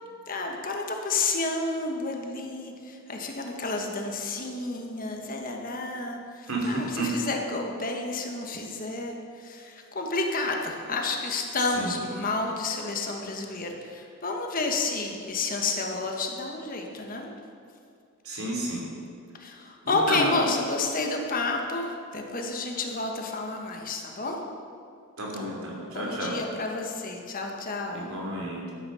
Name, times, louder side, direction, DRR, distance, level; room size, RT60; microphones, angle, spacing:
voice 1, 0.3-17.3 19.4-24.4 25.9-28.1, left 3 dB, 40° left, 2 dB, 1.3 m, -30 dB
voice 2, 6.5-7.1 11.7-12.0 18.2-18.8 19.8-20.4 25.2-26.4 27.9-28.7, right 1 dB, 75° right, -2 dB, 3.0 m, -31 dB
12.5 x 9.1 x 5.6 m, 2.4 s
head